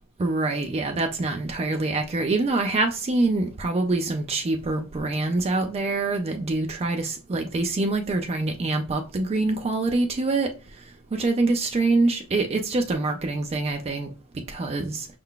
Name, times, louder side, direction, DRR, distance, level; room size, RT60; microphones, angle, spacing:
voice 1, 0.2-10.5 11.1-14.1 14.5-15.1, right 2 dB, 30° right, 0.3 m, -25 dB
5.4 x 3.7 x 2.3 m
head